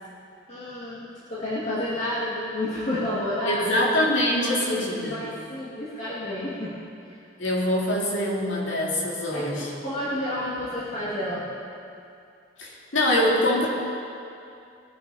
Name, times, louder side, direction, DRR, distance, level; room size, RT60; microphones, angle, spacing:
voice 1, 0.5-3.7 4.4-6.8 7.0-7.2 9.3-11.6, left 1 dB, 35° left, -10 dB, 2.3 m, -30 dB
voice 2, 3.5-5.2 7.4-9.7 12.6-13.7, left 1 dB, 90° left, -3 dB, 2.6 m, -24 dB
21.5 x 9.5 x 4.2 m, 2.5 s
head